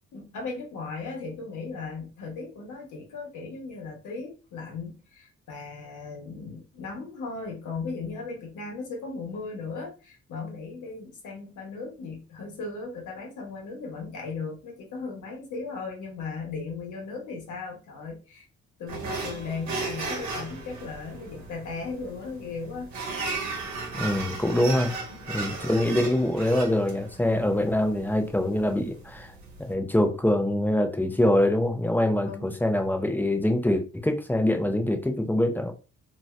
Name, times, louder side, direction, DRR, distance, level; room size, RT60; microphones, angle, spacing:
voice 1, 0.1-18.5 18.8-23.0 25.1-25.3 32.2-32.5, left 4 dB, 80° left, 1.0 m, -37 dB
sound 1, 18.9-29.7, right 3 dB, 65° right, 1.1 m, -36 dB
voice 2, 23.9-25.0 25.3-29.3 29.6-35.7, left 1 dB, 5° left, 0.5 m, -24 dB
2.8 x 2.3 x 3.0 m
cardioid pair, 90°, 30 cm